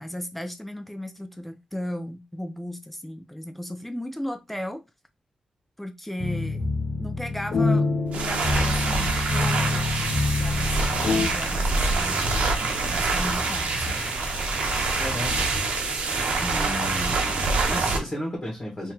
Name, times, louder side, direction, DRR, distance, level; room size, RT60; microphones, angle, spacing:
voice 1, 0.0-4.8 5.8-12.2 12.9-14.0 16.4-16.7, left 1 dB, 5° left, 0.5 m, -36 dB
sound 1, 6.2-11.3, left 3 dB, 55° left, 0.9 m, -26 dB
sound 2, 8.1-18.0, right 3 dB, 75° right, 0.9 m, -25 dB
sound 3, 10.0-15.1, left 4 dB, 75° left, 0.7 m, -42 dB
voice 2, 15.0-15.4 16.6-18.9, equal, 30° left, 1.4 m, -33 dB
3.8 x 2.8 x 3.0 m
wide cardioid pair, 110°, 2 cm